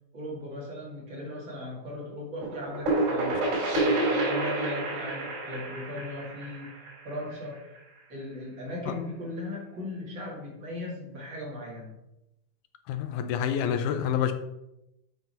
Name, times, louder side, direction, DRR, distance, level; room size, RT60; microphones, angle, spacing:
voice 1, 0.1-6.7 7.0-7.6 8.1-11.9, left 1 dB, 40° right, -3 dB, 2.7 m, -38 dB
sound 1, 2.4-8.0, right 2 dB, 70° right, 3.9 m, -29 dB
voice 2, 12.9-14.3, left 8 dB, 80° left, 8 dB, 2.1 m, -28 dB
7.5 x 5.7 x 5.6 m, 0.89 s
omnidirectional pair, 3.6 m